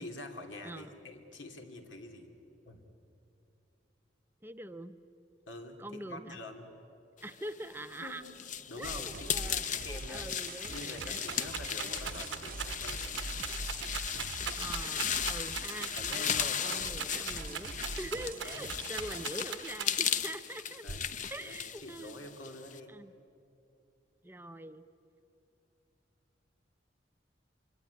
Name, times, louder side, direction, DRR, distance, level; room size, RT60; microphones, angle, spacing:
voice 1, 0.0-2.3 2.6-2.8 5.5-6.7 8.0-8.4 8.7-9.3 9.7-10.3 10.7-13.1 15.9-16.7 18.4-18.7 20.8-21.1 21.4-22.9, left 2 dB, 85° left, 4 dB, 2.8 m, -46 dB
voice 2, 4.4-5.0 5.8-6.4 7.2-8.2 8.8-11.2 14.6-20.9 21.3-22.2 22.9-23.1 24.2-24.8, right 1 dB, 10° right, 10 dB, 0.6 m, -44 dB
sound 1, 7.6-22.8, left 8 dB, 45° left, 0.7 m, -36 dB
sound 2, 8.8-19.3, right 3 dB, 50° right, 0.7 m, -44 dB
Rattle, 10.3-20.2 20.9-21.5, right 8 dB, 80° right, 1.0 m, -41 dB
24.5 x 24.5 x 9.6 m, 2.7 s
head